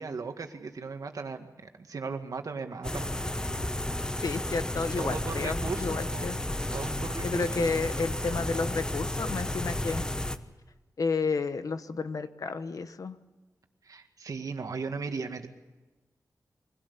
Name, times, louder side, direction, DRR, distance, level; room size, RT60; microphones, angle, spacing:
voice 1, 0.0-3.5 5.0-6.3 6.7-7.9 13.8-15.5, right 4 dB, 65° right, 6 dB, 2.0 m, -37 dB
sound 1, 2.8-10.4, left 1 dB, 10° left, 1.0 m, -32 dB
voice 2, 4.2-6.4 7.2-10.0 11.0-13.2, left 4 dB, 65° left, 11 dB, 1.1 m, -31 dB
24.0 x 17.0 x 8.3 m, 1.2 s
wide cardioid pair, 120°, 6 cm